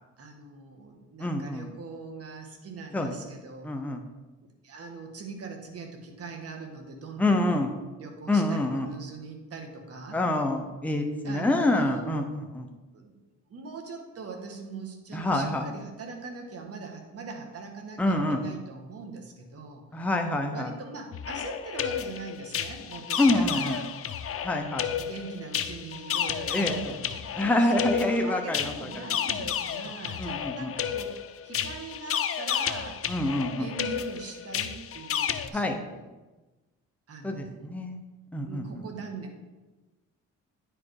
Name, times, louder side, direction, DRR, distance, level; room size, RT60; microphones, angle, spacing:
voice 1, 0.2-3.7 4.4-7.5 8.0-10.2 11.2-12.1 12.9-13.2 13.5-19.8 20.5-23.9 25.0-31.2 31.4-33.0 33.6-36.1 37.1-37.9 38.4-39.4, right 4 dB, 50° right, 3 dB, 1.7 m, -41 dB
voice 2, 1.2-1.7 2.9-3.1 3.6-4.0 7.2-7.7 8.3-8.9 10.1-12.7 15.1-15.6 18.0-18.4 19.9-20.7 23.2-23.8 24.4-24.8 26.5-26.9 27.3-29.1 30.2-30.7 33.1-33.7 35.5-35.7 37.2-38.0 38.3-38.8, left 1 dB, 5° left, 3 dB, 0.9 m, -26 dB
sound 1, 21.1-35.5, left 9 dB, 50° left, 0.6 m, -32 dB
9.7 x 5.1 x 4.7 m, 1.2 s
cardioid pair, 90°, 30 cm